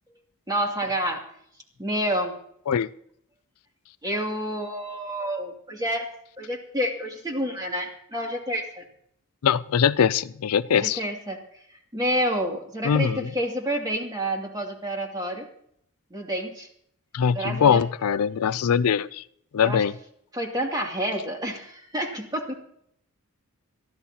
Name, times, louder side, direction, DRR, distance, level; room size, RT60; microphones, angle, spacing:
voice 1, 0.5-1.2 1.8-2.3 4.0-6.1 6.4-8.8 10.7-11.4 11.9-15.5 16.1-16.7 17.3-17.8 19.6-19.8 20.3-22.6, equal, 15° right, 0 dB, 2.6 m, -29 dB
voice 2, 9.4-11.0 12.8-13.3 17.1-19.2 19.5-19.9, left 7 dB, 75° left, 17 dB, 0.4 m, -22 dB
22.5 x 14.0 x 2.9 m, 0.68 s
head